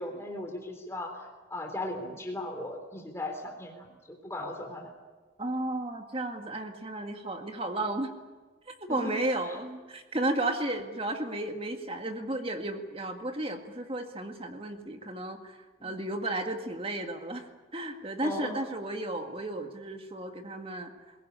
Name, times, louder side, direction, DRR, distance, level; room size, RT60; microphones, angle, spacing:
voice 1, 0.0-4.9 8.9-9.2 9.5-9.6 15.8-16.0 18.2-18.6, left 1 dB, 15° left, 3 dB, 3.5 m, -38 dB
voice 2, 5.4-8.1 8.7-20.9, right 1 dB, 30° right, 5 dB, 1.9 m, -33 dB
22.0 x 18.0 x 9.8 m, 1.3 s
head